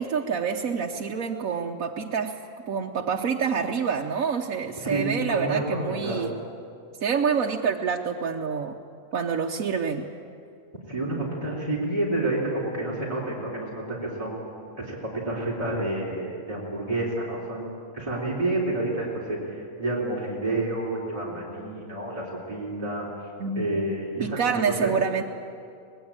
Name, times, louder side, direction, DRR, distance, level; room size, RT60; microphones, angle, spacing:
voice 1, 0.0-2.4 2.7-6.3 7.0-8.8 9.1-10.1 23.4-23.8 24.2-25.2, right 6 dB, 85° right, 0 dB, 1.4 m, -27 dB
voice 2, 5.3-6.2 10.9-23.1 23.5-24.4 24.8-24.9, right 2 dB, 25° right, -5 dB, 3.9 m, -29 dB
25.0 x 19.5 x 8.8 m, 2.4 s
omnidirectional pair, 1.4 m